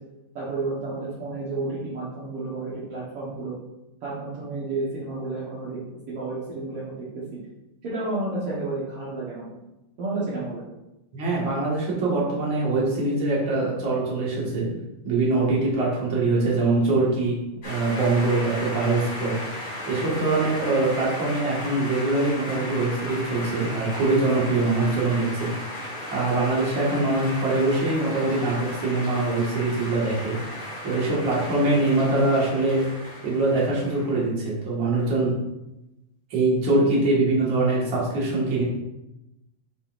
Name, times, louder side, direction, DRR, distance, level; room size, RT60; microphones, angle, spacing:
voice 1, 0.3-3.6 4.0-5.8 6.1-7.2 7.8-9.6 10.0-10.6, right 2 dB, 65° right, -8 dB, 1.5 m, -31 dB
voice 2, 11.1-14.7 15.0-17.4 17.6-19.3 19.9-25.8 26.1-30.4 30.8-32.8 33.2-35.3 36.3-38.6, right 2 dB, 45° right, -5 dB, 1.7 m, -23 dB
sound 1, 17.6-34.3, left 1 dB, 30° left, 2.5 m, -36 dB
8.3 x 5.4 x 2.6 m, 0.94 s
omnidirectional pair, 4.5 m